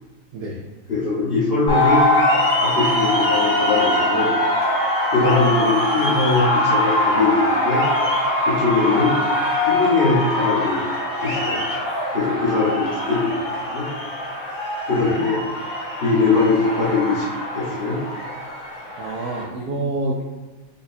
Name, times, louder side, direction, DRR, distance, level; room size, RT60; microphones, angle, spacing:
voice 1, 0.9-2.0 2.6-4.4 5.1-7.8 8.4-9.1 9.6-10.9 11.2-11.7 12.1-13.9 14.9-15.4 16.0-18.0, left 3 dB, 40° left, -10 dB, 0.9 m, -21 dB
sound 1, 1.7-19.4, left 1 dB, 70° left, 2.0 m, -22 dB
voice 2, 14.9-15.3 19.0-20.2, right 2 dB, 75° right, -1 dB, 0.8 m, -28 dB
5.2 x 2.3 x 4.1 m, 1.3 s
omnidirectional pair, 2.2 m